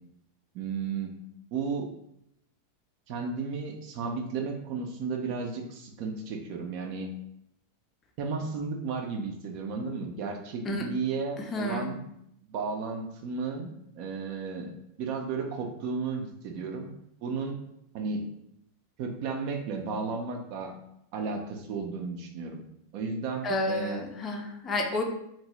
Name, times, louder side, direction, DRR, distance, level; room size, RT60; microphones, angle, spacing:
voice 1, 0.5-1.1 1.5-1.9 3.1-7.1 8.2-12.0 12.4-14.7 15.0-16.9 17.2-17.6 17.9-18.2 19.0-20.7 21.1-22.6 22.9-24.0, right 4 dB, 45° right, 3 dB, 0.5 m, -33 dB
voice 2, 11.5-11.9 23.4-25.0, left 2 dB, 25° left, 2 dB, 0.5 m, -30 dB
2.7 x 2.5 x 3.1 m, 0.77 s
figure-of-eight pair, 90°, 0 cm